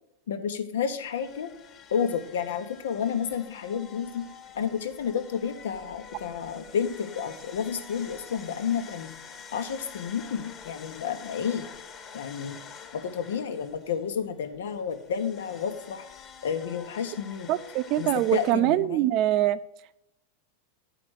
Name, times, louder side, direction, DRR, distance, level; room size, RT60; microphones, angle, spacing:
voice 1, 0.3-1.5 1.9-4.2 4.5-9.1 9.5-11.7 12.1-12.6 12.9-16.1 16.4-17.5 18.0-19.1, left 7 dB, 90° left, 8 dB, 1.1 m, -31 dB
sound 1, 1.0-18.5, left 5 dB, 30° left, 1.3 m, -47 dB
voice 2, 17.5-19.6, right 14 dB, 45° right, 16 dB, 0.4 m, -24 dB
9.4 x 5.0 x 6.4 m, 0.86 s
supercardioid pair, 145°, 0 cm